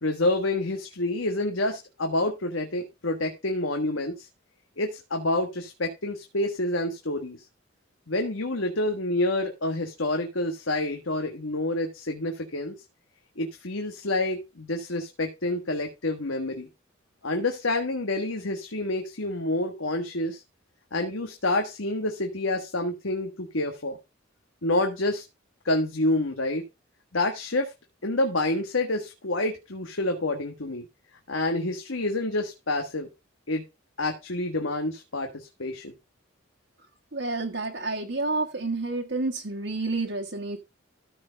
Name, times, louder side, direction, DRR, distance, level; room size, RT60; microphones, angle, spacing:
voice 1, 0.0-4.3 4.8-7.4 8.1-12.7 13.4-16.7 17.2-20.4 20.9-24.0 24.6-25.2 25.6-26.6 27.1-27.7 28.0-30.9 31.3-33.1 33.5-33.6 34.0-35.9, left 2 dB, 80° left, 4 dB, 1.6 m, -28 dB
voice 2, 37.1-40.6, right 3 dB, 65° right, 1 dB, 1.5 m, -29 dB
14.0 x 4.8 x 5.1 m, 0.26 s
head